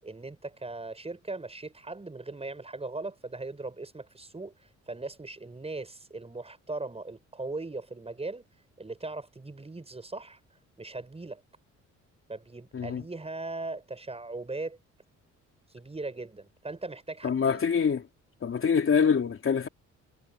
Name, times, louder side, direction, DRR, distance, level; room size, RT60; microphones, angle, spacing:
voice 1, 0.0-8.4 8.8-10.4 10.8-11.4 12.3-14.8 15.7-17.6, right 3 dB, 20° right, 7.4 m, -39 dB
voice 2, 17.2-18.0 18.4-19.7, left 6 dB, 45° left, 3.1 m, -25 dB
cardioid pair, 90°, 30 cm